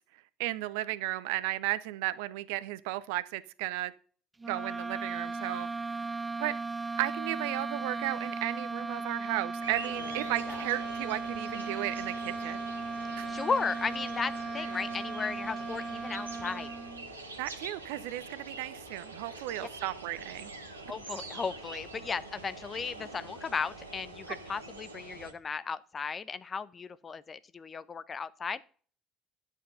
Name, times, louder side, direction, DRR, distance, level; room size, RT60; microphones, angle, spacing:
voice 1, 0.4-3.9 4.5-5.7 6.4-6.5 7.0-12.6 13.2-13.3 17.4-20.5, right 16 dB, 70° right, 0.7 m, -34 dB
sound 1, 4.4-17.1, right 3 dB, 20° right, 0.5 m, -37 dB
sound 2, 9.6-25.3, right 2 dB, 90° right, 1.5 m, -45 dB
voice 2, 10.2-10.7 13.3-16.7 20.9-28.7, left 5 dB, 35° left, 0.8 m, -35 dB
11.0 x 7.3 x 5.5 m
figure-of-eight pair, 50°, 0 cm